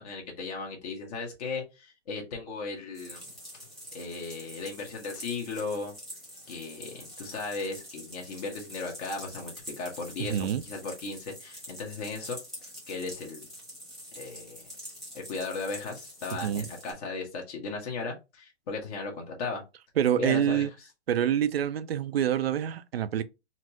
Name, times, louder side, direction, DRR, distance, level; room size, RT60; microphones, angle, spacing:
voice 1, 0.0-3.2 3.9-5.9 6.5-13.5 14.1-14.7 15.1-19.6 20.2-20.7, left 4 dB, 35° left, 1.0 m, -36 dB
sound 1, 2.9-16.9, equal, ahead, 1.1 m, -46 dB
voice 2, 10.3-10.6 16.4-16.7 20.0-20.7 21.1-23.2, right 10 dB, 60° right, 0.5 m, -26 dB
4.1 x 2.0 x 2.7 m
hypercardioid pair, 145°, 35 cm